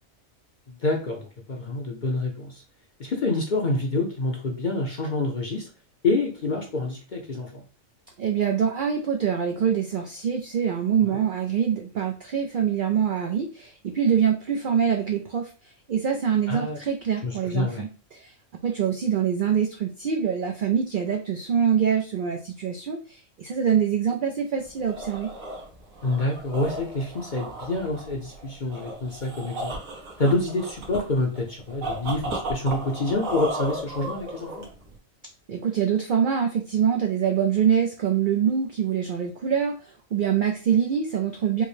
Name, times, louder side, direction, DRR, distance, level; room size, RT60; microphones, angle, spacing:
voice 1, 0.7-2.6 3.0-5.7 6.0-7.6 11.0-11.2 16.5-16.8 17.2-17.8 26.0-29.7 30.2-34.7, left 2 dB, 45° left, 0 dB, 0.7 m, -27 dB
voice 2, 8.2-15.5 15.9-18.3 18.6-25.3 35.5-41.6, right 8 dB, 65° right, 2 dB, 0.5 m, -24 dB
sound 1, 24.6-35.0, right 1 dB, 80° right, 1.5 m, -35 dB
4.9 x 2.1 x 3.2 m, 0.36 s
omnidirectional pair, 1.4 m